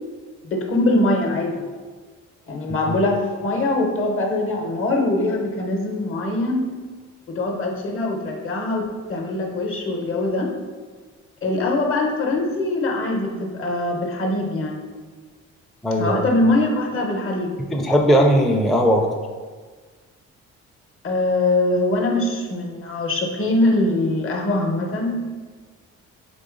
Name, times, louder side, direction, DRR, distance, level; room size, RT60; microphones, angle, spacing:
voice 1, 0.4-1.7 2.5-6.7 7.3-10.5 11.4-14.8 16.0-17.5 21.0-25.2, left 2 dB, 45° left, 2 dB, 0.9 m, -22 dB
voice 2, 15.8-16.2 17.7-19.1, equal, ahead, 1 dB, 0.4 m, -18 dB
3.9 x 3.3 x 3.8 m, 1.5 s
cardioid pair, 90°, 30 cm